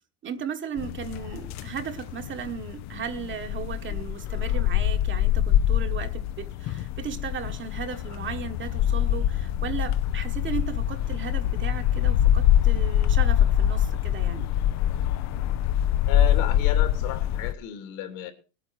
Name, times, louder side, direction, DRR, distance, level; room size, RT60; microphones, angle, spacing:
voice 1, 0.2-14.5, right 7 dB, 30° right, 1.3 m, -36 dB
sound 1, 0.8-17.5, left 11 dB, 40° left, 0.7 m, -24 dB
voice 2, 16.1-18.3, left 10 dB, 70° left, 3.2 m, -33 dB
19.5 x 9.1 x 4.7 m
supercardioid pair, 125°, 42 cm